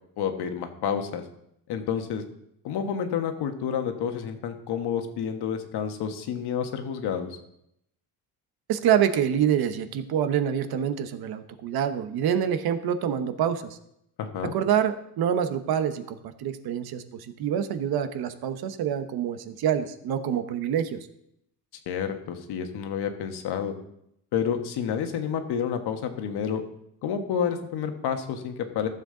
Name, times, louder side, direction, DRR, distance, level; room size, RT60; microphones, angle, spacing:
voice 1, 0.2-1.2 1.7-2.2 2.6-7.4 14.2-14.5 21.9-23.7 24.3-26.6 27.0-28.9, left 7 dB, 75° left, 6 dB, 1.4 m, -29 dB
voice 2, 8.7-13.8 14.5-21.0, right 9 dB, 65° right, 10 dB, 1.0 m, -26 dB
14.5 x 7.4 x 3.8 m, 0.77 s
cardioid pair, 165°, 40 cm